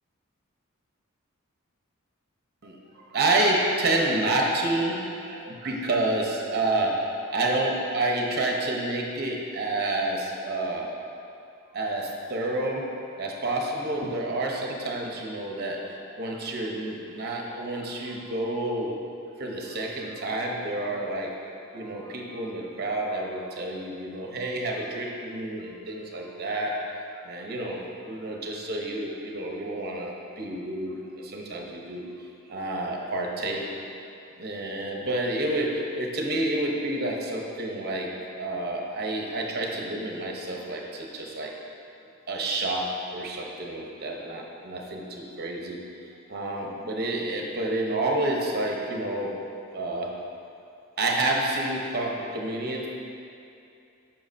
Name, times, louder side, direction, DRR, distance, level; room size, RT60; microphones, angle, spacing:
voice 1, 2.6-11.1 11.7-12.8 13.2-18.9 19.4-21.4 21.7-26.9 27.2-32.1 32.5-33.6 34.4-38.1 38.4-41.5 42.3-45.8 46.3-49.3 49.7-50.1 51.0-52.9, right 2 dB, 50° right, 0 dB, 0.9 m, -29 dB
9.4 x 5.9 x 2.7 m, 2.6 s
head